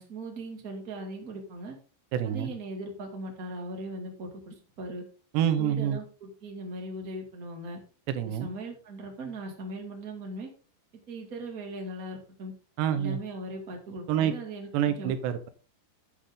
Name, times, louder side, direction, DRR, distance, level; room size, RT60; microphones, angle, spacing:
voice 1, 0.0-1.7 2.2-5.0 5.6-7.8 8.2-10.5 11.1-12.5 12.9-15.1, right 1 dB, 35° right, 1 dB, 1.4 m, -39 dB
voice 2, 2.1-2.5 5.3-6.0 8.1-8.5 12.8-13.2 14.1-14.3 14.7-15.5, right 9 dB, 75° right, 9 dB, 2.8 m, -27 dB
10.0 x 8.8 x 3.7 m, 0.37 s
omnidirectional pair, 5.7 m